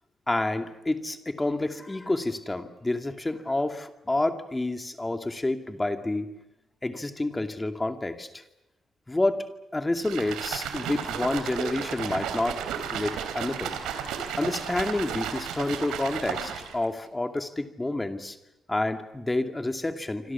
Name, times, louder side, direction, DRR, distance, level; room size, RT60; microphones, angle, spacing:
voice 1, 0.3-6.3 6.8-8.4 9.1-12.6 12.9-13.8 14.4-18.4 18.7-20.3, left 2 dB, 20° left, 7 dB, 2.5 m, -29 dB
sound 1, 10.0-16.9, right 8 dB, 85° right, 3.3 m, -33 dB
26.5 x 26.0 x 7.3 m, 0.94 s
supercardioid pair, 50°, 0 cm